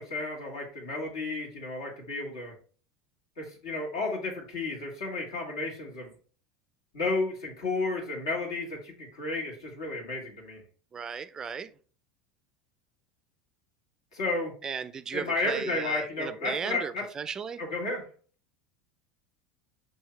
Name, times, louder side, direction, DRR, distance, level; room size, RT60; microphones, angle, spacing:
voice 1, 0.0-2.5 3.4-6.1 6.9-10.6 14.1-14.5 15.1-17.0 17.6-18.0, left 3 dB, 80° left, 1.8 m, -32 dB
voice 2, 10.9-11.7 14.6-17.6, right 6 dB, 30° right, 0.3 m, -36 dB
5.5 x 2.7 x 3.2 m
hypercardioid pair, 90°, 2 cm